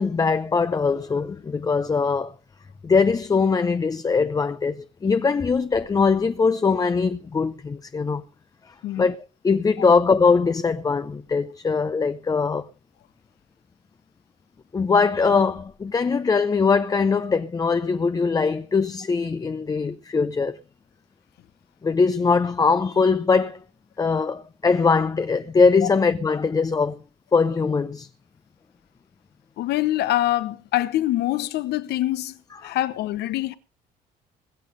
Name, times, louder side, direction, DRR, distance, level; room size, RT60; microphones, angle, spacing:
voice 1, 0.0-2.3 2.8-8.2 8.7-9.2 9.4-12.7 14.7-20.6 21.8-23.6 24.0-27.0 27.3-28.1 32.6-32.7, left 4 dB, 20° left, 0.6 m, -21 dB
voice 2, 29.6-33.5, left 15 dB, 75° left, 1.0 m, -25 dB
21.5 x 7.4 x 5.2 m
cardioid pair, 110°, 17 cm